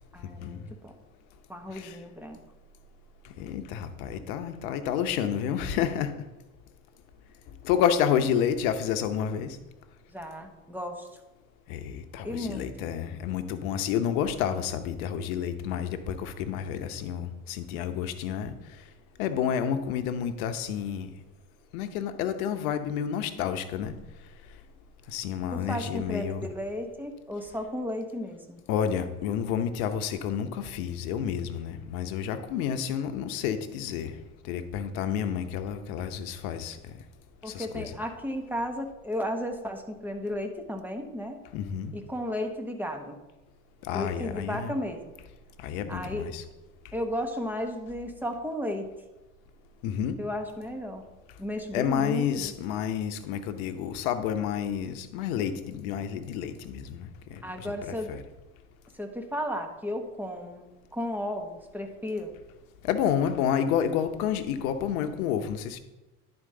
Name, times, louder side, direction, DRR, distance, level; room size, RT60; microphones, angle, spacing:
voice 1, 0.1-0.9 1.5-2.4 10.1-11.1 12.2-12.6 25.5-28.6 37.4-41.4 41.9-43.2 43.9-45.0 45.9-46.3 46.9-48.9 50.2-51.0 51.4-52.5 57.4-58.2 58.9-62.3, left 1 dB, 5° right, 4 dB, 1.2 m, -34 dB
voice 2, 3.4-6.1 7.6-9.6 11.7-18.5 19.2-21.1 21.7-23.9 25.1-26.5 28.7-34.2 34.5-36.8 37.5-38.0 41.5-41.9 43.8-44.8 45.6-46.4 49.8-50.2 51.7-58.2 62.8-65.8, left 8 dB, 75° left, 9 dB, 0.9 m, -30 dB
11.0 x 4.4 x 3.8 m, 1.0 s
hypercardioid pair, 75°, 43 cm